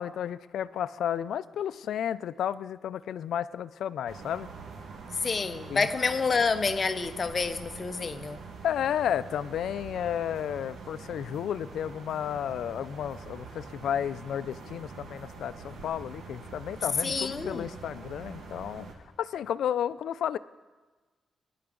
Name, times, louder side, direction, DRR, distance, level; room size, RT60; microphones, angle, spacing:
voice 1, 0.0-4.5 5.7-5.9 8.6-18.9 19.2-20.4, left 9 dB, 90° left, 0.3 m, -32 dB
sound 1, 4.1-18.9, right 4 dB, 85° right, 1.6 m, -44 dB
voice 2, 5.2-8.4 17.0-17.7, left 4 dB, 35° left, 0.6 m, -28 dB
21.0 x 10.0 x 3.8 m
wide cardioid pair, 130°, 0 cm